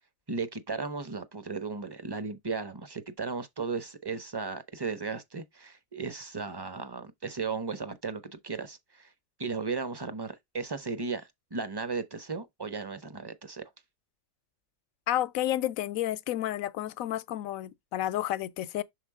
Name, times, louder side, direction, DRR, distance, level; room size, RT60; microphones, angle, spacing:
voice 1, 0.3-9.1 9.4-13.6, right 4 dB, 30° right, 0.4 m, -35 dB
voice 2, 15.1-18.8, left 13 dB, 85° left, 1.0 m, -31 dB
6.6 x 4.0 x 3.6 m
omnidirectional pair, 1.4 m